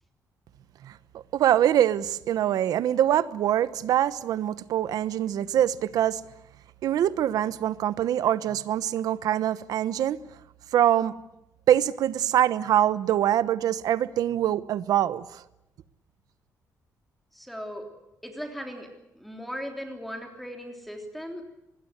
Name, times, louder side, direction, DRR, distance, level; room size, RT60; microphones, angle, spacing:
voice 1, 0.8-6.2 6.8-10.2 10.7-11.2 11.7-15.4, right 11 dB, 80° right, 1.0 m, -24 dB
voice 2, 17.3-17.9 18.2-21.4, equal, ahead, 3.3 m, -38 dB
25.0 x 20.5 x 8.1 m
cardioid pair, 175°, 6 cm